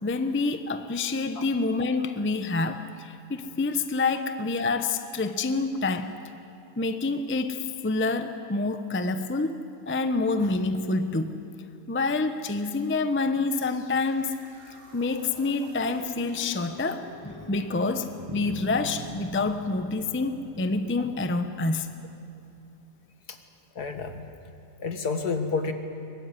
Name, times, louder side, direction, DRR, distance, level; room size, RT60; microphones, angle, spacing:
voice 1, 0.0-6.2 6.8-9.6 9.9-11.4 11.9-14.4 14.9-22.0, left 3 dB, 10° left, 9 dB, 0.7 m, -27 dB
sound 1, 13.4-22.5, left 1 dB, 80° right, 7.7 m, -50 dB
sound 2, 18.3-22.6, right 2 dB, 20° right, 1.0 m, -42 dB
voice 2, 23.8-24.3 24.8-25.7, left 4 dB, 65° left, 7 dB, 2.3 m, -30 dB
23.5 x 20.5 x 9.9 m, 2.7 s
omnidirectional pair, 1.8 m